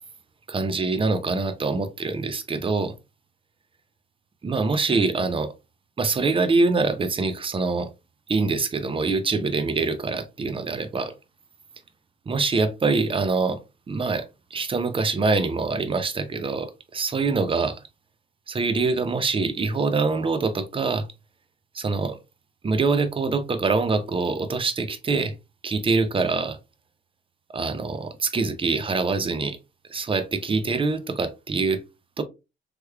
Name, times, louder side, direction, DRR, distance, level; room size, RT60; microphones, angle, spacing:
voice 1, 0.5-2.9 4.4-5.5 6.0-7.9 8.3-11.1 12.3-13.6 13.9-14.2 14.5-17.8 18.5-21.1 21.7-22.2 22.6-25.3 25.6-26.6 27.5-29.6 29.9-31.8 32.2-32.3, right 4 dB, 25° right, 0.6 m, -24 dB
3.3 x 3.0 x 2.3 m
cardioid pair, 90°, 20 cm